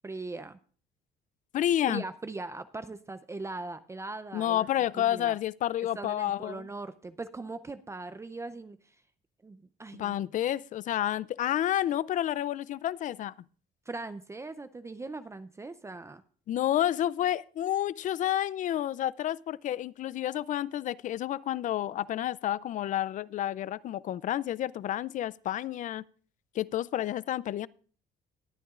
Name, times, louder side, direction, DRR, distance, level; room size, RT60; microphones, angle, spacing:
voice 1, 0.0-0.6 1.9-4.7 4.9-5.4 5.9-9.0 9.4-10.2 13.9-16.2, right 3 dB, 15° right, 0.5 m, -40 dB
voice 2, 1.5-2.0 4.3-6.7 10.0-13.3 16.5-26.0 26.5-27.7, left 12 dB, 50° left, 0.4 m, -30 dB
20.5 x 9.2 x 2.4 m
cardioid pair, 110°, 17 cm